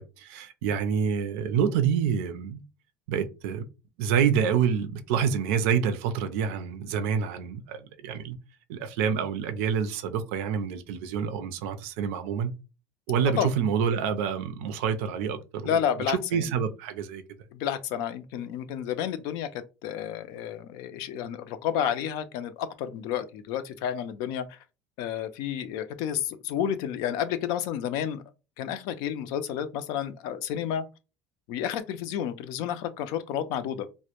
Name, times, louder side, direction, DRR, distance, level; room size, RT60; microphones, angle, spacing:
voice 1, 0.0-2.6 3.1-3.6 4.0-8.4 8.7-12.5 13.1-15.8 16.1-17.2, right 7 dB, 90° right, 0.4 m, -27 dB
voice 2, 15.6-16.5 17.5-19.5 19.8-24.6 25.0-28.2 28.6-30.9 31.5-33.9, left 9 dB, 75° left, 0.4 m, -30 dB
2.1 x 2.1 x 2.8 m
cardioid pair, 125°, 7 cm